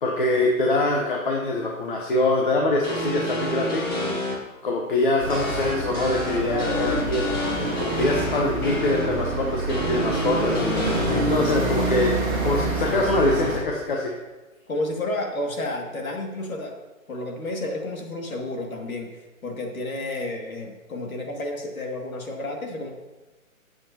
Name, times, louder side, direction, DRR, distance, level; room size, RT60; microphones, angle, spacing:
voice 1, 0.0-4.2 4.6-7.3 7.8-10.7 11.3-12.1 12.4-14.1, left 2 dB, 40° left, -1 dB, 1.2 m, -24 dB
sound 1, 2.8-4.3 5.3-9.1 9.7-11.2, equal, 15° left, 1.1 m, -29 dB
sound 2, 5.2-13.6, right 2 dB, 15° right, 1.9 m, -27 dB
voice 2, 6.6-6.9 14.7-16.8 17.1-22.9, left 2 dB, 80° left, 1 dB, 2.5 m, -31 dB
17.0 x 7.7 x 2.9 m, 1.2 s
hypercardioid pair, 170°, 41 cm